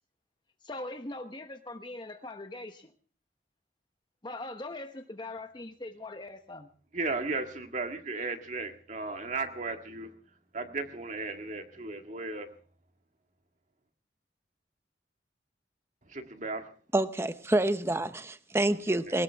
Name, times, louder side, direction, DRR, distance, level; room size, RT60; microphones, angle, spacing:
voice 1, 0.6-2.9 4.2-6.7, left 2 dB, 25° left, 6 dB, 1.0 m, -41 dB
voice 2, 6.9-10.1 10.5-12.5 16.1-16.7, right 3 dB, 45° right, 6 dB, 1.8 m, -35 dB
voice 3, 16.9-19.2, right 1 dB, 15° right, 11 dB, 0.8 m, -27 dB
21.5 x 18.5 x 3.5 m, 0.40 s
head